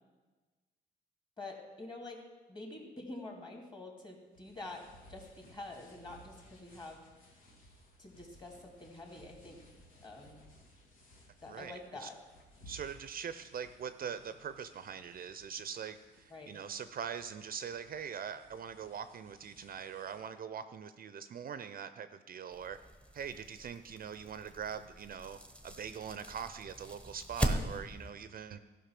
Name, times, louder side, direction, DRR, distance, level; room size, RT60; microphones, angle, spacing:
voice 1, 1.4-2.2 2.5-4.8 5.1-7.3 8.0-9.6 10.0-10.4 11.4-12.2 16.3-16.5, left 2 dB, 25° left, 2 dB, 2.4 m, -47 dB
sound 1, 4.3-20.3, right 1 dB, 85° left, 2.3 m, -60 dB
voice 2, 11.5-12.1 12.7-22.8 23.1-28.6, right 7 dB, 45° right, 11 dB, 0.5 m, -42 dB
sound 2, 22.5-28.1, right 1 dB, 5° left, 1.0 m, -39 dB
13.5 x 5.5 x 5.9 m, 1.3 s
cardioid pair, 90°, 20 cm